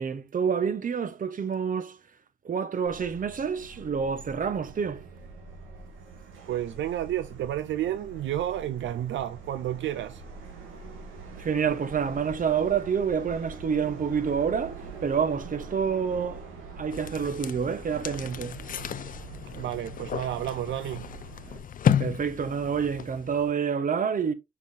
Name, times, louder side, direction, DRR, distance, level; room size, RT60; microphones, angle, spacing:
voice 1, 0.0-2.0 2.4-5.1 11.4-16.5 16.8-18.6 22.0-24.3, right 6 dB, 45° right, 1.2 m, -28 dB
Subway metro underground, 2.8-21.6, right 4 dB, 90° right, 2.2 m, -44 dB
voice 2, 6.5-10.2 19.5-21.1, right 12 dB, 70° right, 0.6 m, -31 dB
sound 1, 16.9-23.5, left 8 dB, 45° left, 0.5 m, -32 dB
5.9 x 5.8 x 2.8 m
cardioid pair, 90°, 20 cm